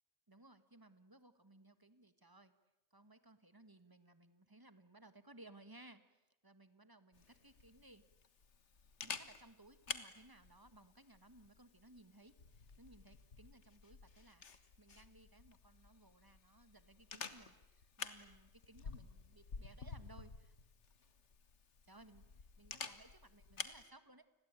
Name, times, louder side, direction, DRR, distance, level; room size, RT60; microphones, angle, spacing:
voice 1, 0.3-2.5 2.9-8.0 9.0-20.5 21.8-22.2 22.6-24.4, right 2 dB, 20° right, 12 dB, 1.6 m, -62 dB
Camera, 7.1-23.8, left 5 dB, 90° left, 1.8 m, -51 dB
30.0 x 21.5 x 9.0 m, 0.93 s
omnidirectional pair, 1.2 m